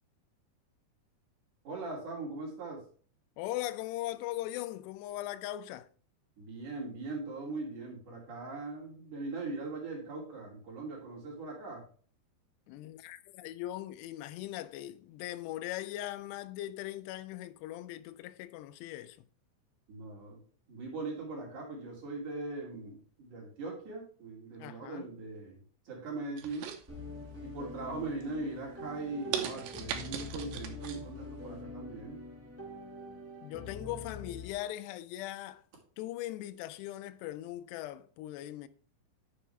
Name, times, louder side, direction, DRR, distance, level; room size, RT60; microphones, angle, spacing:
voice 1, 1.6-2.8 6.4-11.8 19.9-20.4 20.7-26.7 27.4-32.2, right 3 dB, 50° right, 3.9 m, -40 dB
voice 2, 3.4-5.9 12.7-19.3 24.6-25.1 27.9-28.0 33.4-35.6 36.0-38.7, left 14 dB, 90° left, 2.7 m, -40 dB
sound 1, 26.4-27.4 27.8-28.2 28.7-28.8 29.3-31.0 31.4-31.5, right 9 dB, 85° right, 3.1 m, -38 dB
sound 2, 26.9-34.5, left 2 dB, 5° right, 1.5 m, -45 dB
9.9 x 7.0 x 3.3 m
omnidirectional pair, 4.7 m